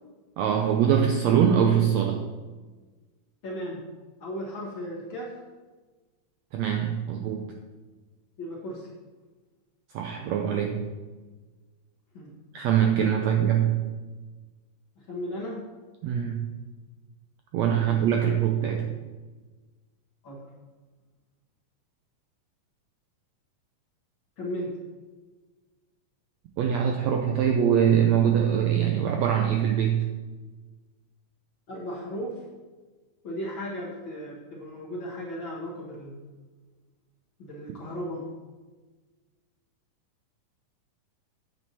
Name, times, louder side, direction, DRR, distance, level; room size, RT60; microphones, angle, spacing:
voice 1, 0.4-2.3 6.5-7.5 9.9-10.9 12.5-13.9 16.0-16.5 17.5-19.0 26.6-30.1, right 8 dB, 80° right, 3 dB, 1.6 m, -23 dB
voice 2, 3.4-3.8 4.2-5.3 8.4-8.9 12.1-12.3 13.2-13.4 15.0-15.6 16.2-16.3 17.8-17.9 20.2-20.4 24.4-24.7 31.7-32.4 33.2-36.2 37.4-38.3, equal, 50° left, -3 dB, 1.7 m, -36 dB
8.9 x 7.7 x 4.3 m, 1.3 s
omnidirectional pair, 3.8 m